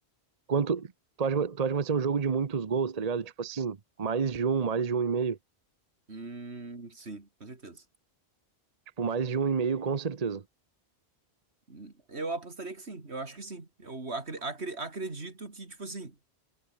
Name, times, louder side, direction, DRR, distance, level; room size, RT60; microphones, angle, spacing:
voice 1, 0.5-0.9 1.2-5.4 9.0-10.4, right 5 dB, 40° right, 0.9 m, -28 dB
voice 2, 6.1-7.8 11.7-16.1, right 3 dB, 75° right, 3.4 m, -39 dB
omnidirectional pair, 1.1 m